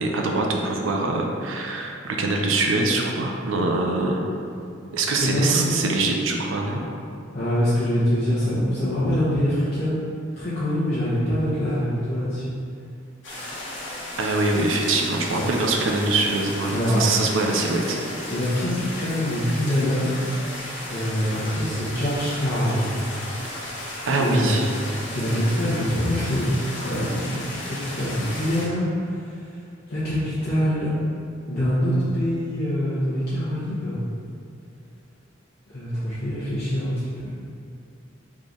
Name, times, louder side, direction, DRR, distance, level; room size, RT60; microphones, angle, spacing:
voice 1, 0.0-4.2 4.9-6.8 14.2-18.0 23.5-23.7 24.0-24.7, right 2 dB, 85° right, 1 dB, 0.6 m, -23 dB
voice 2, 5.1-6.0 7.3-9.9 10.4-12.5 15.3-15.5 16.7-17.1 18.3-20.1 20.9-23.0 24.2-24.6 25.1-28.9 29.9-30.9 31.5-34.0 35.7-37.3, equal, 55° left, -12 dB, 0.9 m, -24 dB
sound 1, 13.2-28.7, left 1 dB, 70° left, 1.2 m, -35 dB
3.6 x 3.1 x 3.9 m, 2.4 s
head